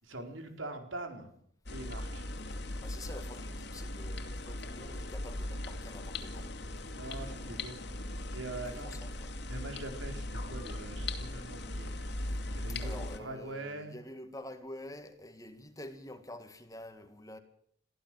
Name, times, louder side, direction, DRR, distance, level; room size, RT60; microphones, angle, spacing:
voice 1, 0.0-1.3 1.7-2.2 7.0-7.9 8.3-9.0 9.5-11.9 12.5-14.0, right 2 dB, 85° right, 4.4 m, -43 dB
sound 1, 1.7-13.2, left 1 dB, 60° left, 2.6 m, -39 dB
voice 2, 2.8-6.5 7.1-7.6 8.7-9.3 12.8-17.4, left 1 dB, 20° left, 1.8 m, -48 dB
23.0 x 15.0 x 7.7 m
head